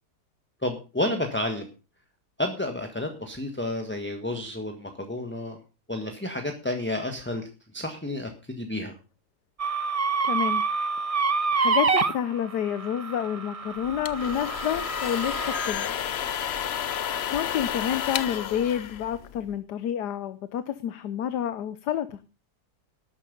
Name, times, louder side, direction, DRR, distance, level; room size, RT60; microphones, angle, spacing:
voice 1, 0.6-1.7 2.4-5.6 5.9-7.5 7.7-8.9, left 1 dB, 5° left, 5 dB, 1.4 m, -30 dB
sound 1, 9.6-15.7, right 4 dB, 30° right, 0.6 m, -27 dB
voice 2, 10.2-10.6 11.5-15.9 17.3-22.2, left 10 dB, 80° left, 13 dB, 1.4 m, -29 dB
sound 2, 13.8-19.6, left 9 dB, 55° left, 0.8 m, -31 dB
12.5 x 10.0 x 5.4 m, 0.33 s
omnidirectional pair, 1.7 m